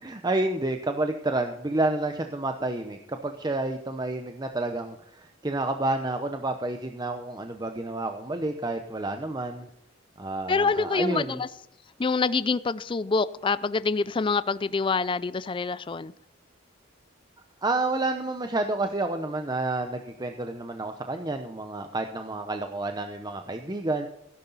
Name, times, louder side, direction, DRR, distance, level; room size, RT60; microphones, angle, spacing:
voice 1, 0.0-9.7 10.2-11.4 17.6-24.1, right 2 dB, 20° right, 0.8 m, -29 dB
voice 2, 10.5-11.5 12.0-16.1, left 4 dB, 25° left, 0.4 m, -26 dB
16.0 x 11.5 x 4.0 m
head